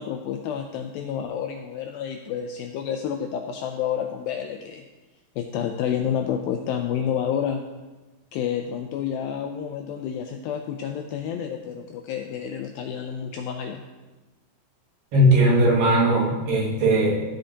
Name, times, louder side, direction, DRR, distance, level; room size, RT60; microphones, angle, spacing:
voice 1, 0.0-4.8 5.4-7.6 8.3-13.9, left 8 dB, 85° left, 5 dB, 2.1 m, -29 dB
voice 2, 15.1-17.2, right 1 dB, 80° right, -6 dB, 4.2 m, -19 dB
14.5 x 7.9 x 2.9 m, 1.2 s
omnidirectional pair, 4.7 m